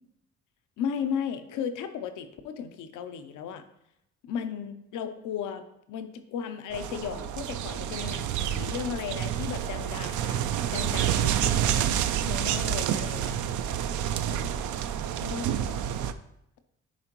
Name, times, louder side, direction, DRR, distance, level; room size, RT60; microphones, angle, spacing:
voice 1, 0.8-3.6 4.2-13.4 14.3-14.5 15.2-15.8, left 7 dB, 90° left, 9 dB, 0.7 m, -36 dB
sound 1, 6.7-16.1, right 10 dB, 75° right, 0.5 m, -28 dB
10.5 x 4.3 x 3.0 m, 0.79 s
cardioid pair, 90°, 30 cm